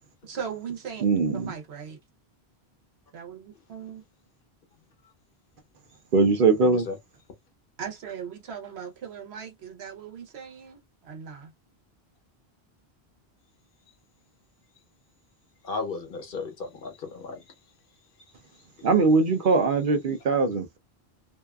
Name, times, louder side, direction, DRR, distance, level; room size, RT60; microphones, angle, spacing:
voice 1, 0.2-1.1 1.3-2.0 3.1-4.0 7.8-11.5, right 7 dB, 85° right, 1.1 m, -38 dB
voice 2, 1.0-1.5 6.1-6.9 18.8-20.8, right 4 dB, 60° right, 0.8 m, -21 dB
voice 3, 6.6-7.0 15.6-17.5 18.5-18.9, left 4 dB, 60° left, 0.9 m, -35 dB
2.7 x 2.3 x 2.2 m
omnidirectional pair, 1.1 m